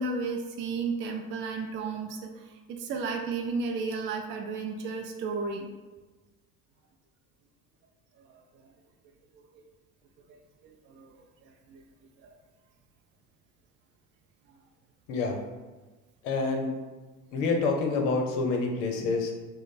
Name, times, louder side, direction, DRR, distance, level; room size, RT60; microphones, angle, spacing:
voice 1, 0.0-2.4 2.7-5.7 8.3-8.4 8.6-8.7 10.3-11.1 11.7-11.8 12.2-12.3, right 4 dB, 30° right, 3 dB, 0.4 m, -33 dB
voice 2, 16.2-16.7 17.3-19.3, left 3 dB, 70° left, 2 dB, 0.8 m, -27 dB
3.1 x 2.2 x 4.1 m, 1.2 s
hypercardioid pair, 70°, 41 cm